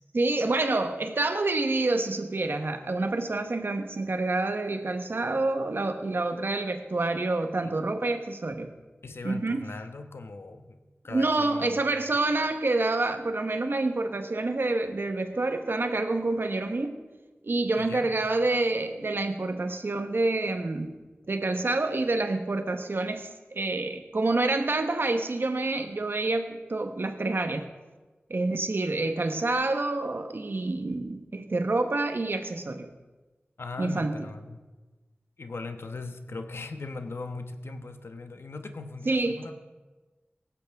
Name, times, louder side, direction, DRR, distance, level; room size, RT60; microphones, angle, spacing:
voice 1, 0.1-8.7 9.2-9.6 11.1-17.0 17.4-20.9 21.3-27.7 28.3-32.9 33.8-34.2 39.0-39.4, right 2 dB, 60° right, 7 dB, 1.2 m, -27 dB
voice 2, 9.0-11.7 12.1-12.2 17.8-18.1 33.6-34.6 35.4-39.5, left 3 dB, 75° left, 7 dB, 1.1 m, -39 dB
17.5 x 15.5 x 3.6 m, 1.2 s
wide cardioid pair, 60°, 4 cm